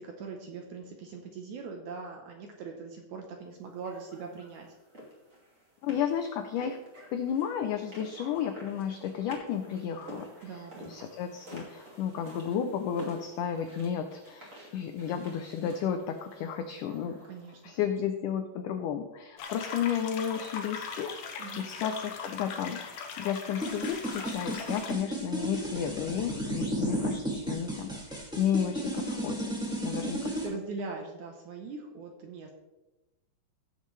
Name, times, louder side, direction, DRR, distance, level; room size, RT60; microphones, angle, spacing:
voice 1, 0.0-4.7 10.4-11.0 17.3-17.9 21.4-21.7 29.8-32.5, right 4 dB, 70° right, 3 dB, 2.0 m, -42 dB
sound 1, 3.8-17.9, right 1 dB, 25° right, 1.9 m, -50 dB
voice 2, 5.8-6.8 7.1-17.2 17.6-30.3, left 8 dB, 85° left, 7 dB, 1.8 m, -33 dB
sound 2, 19.4-24.9, left 5 dB, 70° left, 2.3 m, -40 dB
sound 3, 23.6-30.5, right 1 dB, ahead, 1.1 m, -33 dB
16.5 x 7.4 x 3.2 m, 1.0 s
omnidirectional pair, 4.5 m